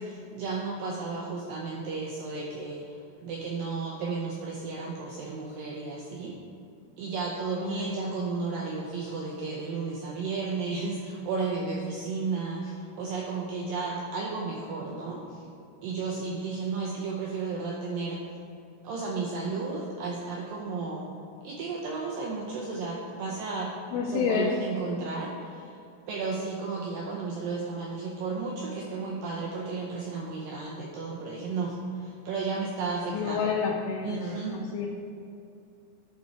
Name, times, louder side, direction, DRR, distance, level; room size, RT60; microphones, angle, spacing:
voice 1, 0.0-6.4 7.0-15.4 15.8-18.2 18.8-21.1 21.4-23.7 24.1-25.7 26.1-33.4 34.0-34.6, right 4 dB, 85° right, -3 dB, 2.0 m, -33 dB
voice 2, 7.6-8.2 23.9-24.5 33.1-34.9, left 6 dB, 85° left, -1 dB, 2.8 m, -30 dB
11.5 x 4.1 x 4.6 m, 2.6 s
omnidirectional pair, 4.9 m